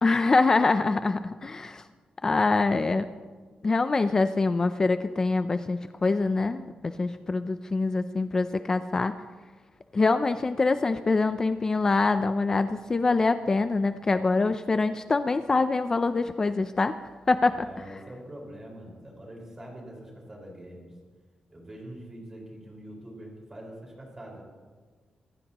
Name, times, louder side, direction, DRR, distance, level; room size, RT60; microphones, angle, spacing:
voice 1, 0.0-1.8 2.2-3.1 3.6-9.1 9.9-16.9 17.3-17.7, left 3 dB, 25° left, 10 dB, 0.5 m, -24 dB
voice 2, 17.5-20.9 21.5-24.4, right 1 dB, 20° right, -2 dB, 4.9 m, -44 dB
26.5 x 15.5 x 3.0 m, 1.5 s
wide cardioid pair, 170°, 3 cm